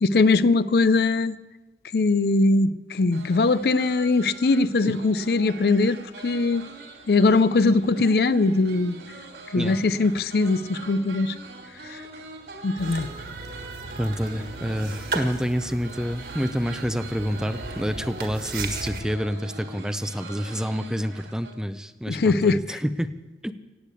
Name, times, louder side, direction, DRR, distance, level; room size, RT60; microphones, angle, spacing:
voice 1, 0.0-1.4 1.9-6.7 7.1-9.0 9.5-11.3 11.9-12.0 12.6-13.1 22.1-22.8, left 3 dB, 65° left, 16 dB, 0.5 m, -21 dB
sound 1, 3.1-21.5, right 3 dB, 80° right, 2.8 m, -43 dB
sound 2, 12.8-19.0, right 3 dB, 55° right, 1.7 m, -36 dB
voice 2, 14.0-23.1 23.4-23.5, equal, 5° right, 11 dB, 0.4 m, -28 dB
16.5 x 8.4 x 8.4 m, 1.2 s
head